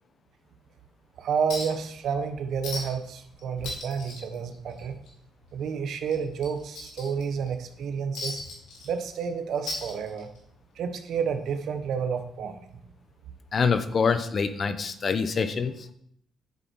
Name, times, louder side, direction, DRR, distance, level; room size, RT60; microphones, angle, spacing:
voice 1, 1.2-5.0 5.5-8.4 8.8-10.3 10.8-12.6, right 6 dB, 70° right, 8 dB, 1.3 m, -30 dB
Chink clink, 1.5-1.9 2.2-2.3 2.6-3.1 3.4-5.1 5.4-5.6 6.1-7.5 8.1-9.2 9.5-10.5 11.6-11.7, left 2 dB, 90° left, 3.5 m, -37 dB
voice 2, 13.5-15.7, left 5 dB, 45° left, 11 dB, 0.9 m, -25 dB
9.9 x 7.7 x 4.8 m, 0.69 s
cardioid pair, 90°, 0 cm